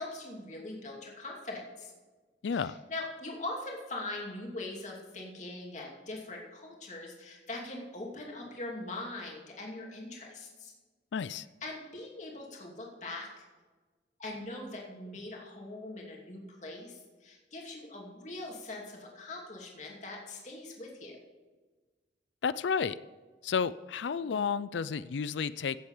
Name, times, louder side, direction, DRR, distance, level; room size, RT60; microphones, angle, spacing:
voice 1, 0.0-1.9 2.5-10.7 11.6-13.4 14.2-21.2 24.3-24.5, left 2 dB, 40° left, -1 dB, 2.7 m, -42 dB
voice 2, 2.4-2.8 11.1-11.5 22.4-23.0 23.4-25.8, left 6 dB, 85° left, 16 dB, 0.4 m, -31 dB
16.0 x 7.9 x 5.6 m, 1.3 s
head